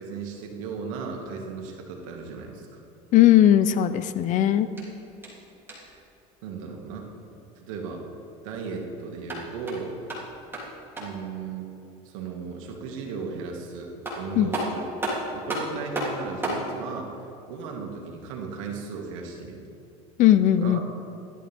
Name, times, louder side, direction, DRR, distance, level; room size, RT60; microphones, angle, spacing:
voice 1, 0.0-2.8 5.7-6.0 6.4-7.1 7.6-8.0 8.4-10.0 11.0-11.7 12.0-14.9 15.3-17.1 17.5-19.7 20.6-20.8, right 5 dB, 85° right, 1 dB, 2.1 m, -36 dB
voice 2, 3.1-4.7 14.4-14.5 20.2-20.8, left 12 dB, 50° left, 13 dB, 0.6 m, -18 dB
sound 1, 4.7-6.0 9.1-11.3 13.6-13.7 14.0-16.7, right 1 dB, 15° right, 3.1 m, -33 dB
16.0 x 12.0 x 3.6 m, 2.8 s
supercardioid pair, 120°, 17 cm